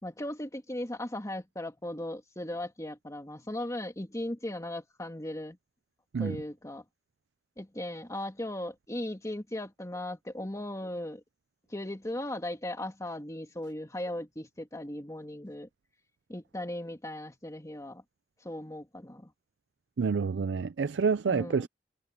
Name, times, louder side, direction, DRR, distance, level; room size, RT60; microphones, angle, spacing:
voice 1, 0.0-5.6 6.2-6.8 7.6-11.2 11.7-15.7 16.3-18.0 18.4-19.3 21.3-21.7, left 1 dB, 20° left, 2.2 m, -37 dB
voice 2, 20.0-21.7, right 5 dB, 75° right, 0.4 m, -28 dB
head